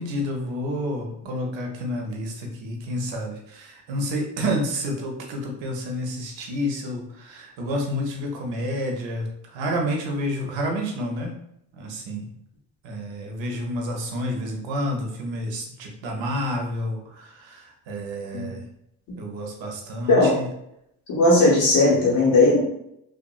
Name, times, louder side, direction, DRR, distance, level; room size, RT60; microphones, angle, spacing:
voice 1, 0.0-11.3 11.7-12.3 12.8-18.6 19.2-20.5, equal, 80° right, 2 dB, 0.7 m, -29 dB
voice 2, 21.1-22.6, left 2 dB, 85° left, -7 dB, 1.0 m, -17 dB
2.6 x 2.4 x 2.3 m, 0.77 s
supercardioid pair, 50°, 44 cm